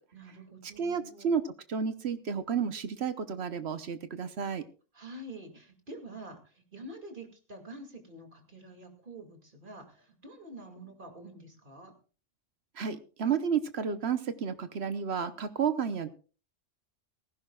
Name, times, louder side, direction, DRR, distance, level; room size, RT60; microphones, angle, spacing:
voice 1, 0.1-1.3 4.9-11.9, right 1 dB, 40° right, 4 dB, 2.5 m, -47 dB
voice 2, 0.8-1.4 1.7-4.6 12.8-16.1, right 7 dB, 60° right, 11 dB, 1.1 m, -31 dB
18.5 x 15.5 x 2.3 m, 0.36 s
omnidirectional pair, 1.3 m